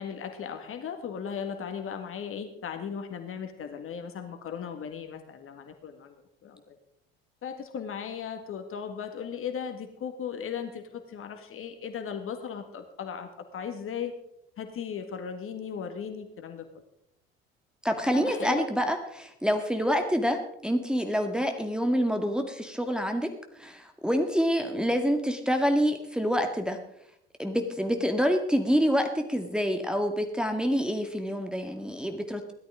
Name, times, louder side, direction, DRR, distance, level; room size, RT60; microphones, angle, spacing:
voice 1, 0.0-6.2 6.4-6.8 7.4-14.1 14.6-16.7 18.0-18.6, left 7 dB, 45° left, 6 dB, 1.8 m, -37 dB
voice 2, 17.8-23.3 23.6-26.8 27.4-32.5, equal, 5° right, 5 dB, 1.9 m, -27 dB
17.0 x 13.0 x 3.7 m, 0.77 s
hypercardioid pair, 60°, 30 cm